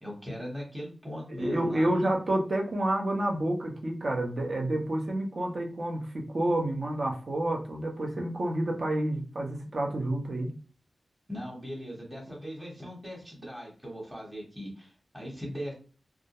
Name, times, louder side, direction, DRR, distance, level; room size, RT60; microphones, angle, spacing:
voice 1, 0.0-1.9 11.3-14.9 15.1-15.7, equal, 10° right, -3 dB, 1.0 m, -39 dB
voice 2, 1.4-10.5, right 1 dB, 55° right, 0 dB, 0.7 m, -29 dB
2.4 x 2.1 x 2.8 m, 0.38 s
cardioid pair, 60°, 0 cm